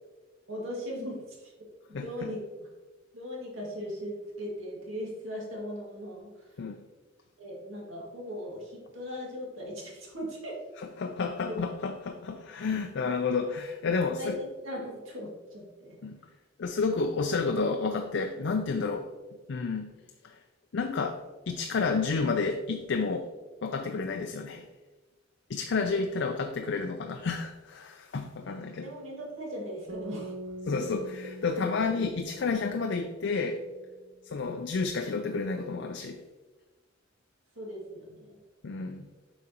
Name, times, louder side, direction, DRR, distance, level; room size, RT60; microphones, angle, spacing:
voice 1, 0.5-1.5 2.0-2.4 3.1-6.3 7.4-10.5 11.5-11.6 13.0-13.1 14.2-14.3 14.6-16.0 25.8-26.0 28.8-30.3 37.6-38.4, equal, 80° right, -3 dB, 2.1 m, -38 dB
voice 2, 1.9-2.3 6.6-6.8 10.8-14.4 16.0-16.2 16.6-19.1 19.5-20.0 20.2-20.4 20.7-23.3 23.6-24.7 25.5-28.9 30.6-33.6 34.2-36.2 38.6-39.1, left 4 dB, 60° left, 5 dB, 0.4 m, -30 dB
sound 1, 29.9-34.1, equal, 50° right, 0.8 m, -44 dB
7.4 x 5.1 x 2.9 m, 1.2 s
head